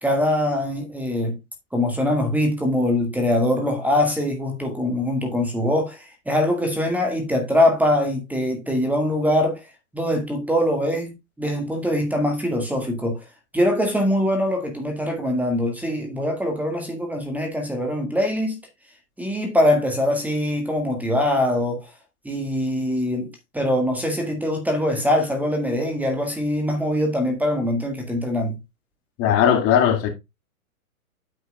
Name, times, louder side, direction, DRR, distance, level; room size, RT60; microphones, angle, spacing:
voice 1, 0.0-1.4 1.7-9.6 9.9-13.2 13.5-18.6 19.2-21.8 22.3-28.6, left 1 dB, 5° right, 1.8 m, -23 dB
voice 2, 29.2-30.1, left 9 dB, 30° left, 1.9 m, -18 dB
8.8 x 7.9 x 2.2 m
hypercardioid pair, 130°, 44 cm